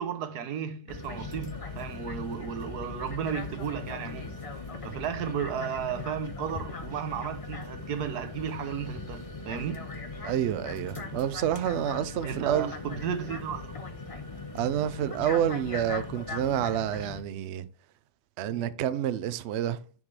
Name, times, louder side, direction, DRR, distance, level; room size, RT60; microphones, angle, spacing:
voice 1, 0.0-4.3 4.8-9.9 12.2-13.8 18.5-18.7, right 8 dB, 80° right, 1.3 m, -34 dB
sound 1, 0.9-17.2, left 3 dB, 30° left, 0.7 m, -39 dB
voice 2, 10.2-12.7 14.5-17.6 18.4-19.8, right 10 dB, 60° right, 0.7 m, -28 dB
10.5 x 6.4 x 3.3 m
omnidirectional pair, 1.7 m